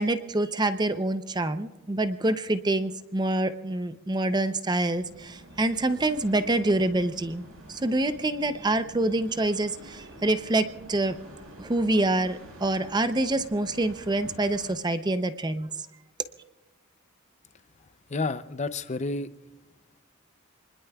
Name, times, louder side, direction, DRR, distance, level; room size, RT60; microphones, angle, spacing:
voice 1, 0.0-7.4 7.7-11.2 11.6-15.7, right 2 dB, 20° right, 10 dB, 0.6 m, -26 dB
sound 1, 4.6-14.7, right 1 dB, 80° right, 4.9 m, -48 dB
voice 2, 17.8-19.3, left 3 dB, 30° left, 12 dB, 0.5 m, -31 dB
27.5 x 20.5 x 2.3 m, 1.1 s
head